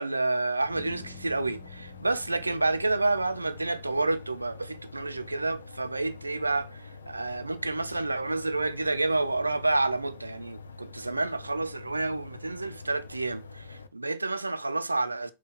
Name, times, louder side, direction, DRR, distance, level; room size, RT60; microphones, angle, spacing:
voice 1, 0.0-15.3, right 2 dB, 80° right, 0.3 m, -29 dB
sound 1, 0.6-13.9, left 4 dB, 75° left, 0.3 m, -46 dB
Bass guitar, 0.7-4.7, left 2 dB, ahead, 1.2 m, -52 dB
Keyboard (musical), 2.5-5.7, right 4 dB, 20° left, 1.7 m, -56 dB
4.2 x 2.2 x 4.0 m
figure-of-eight pair, 90°, 0 cm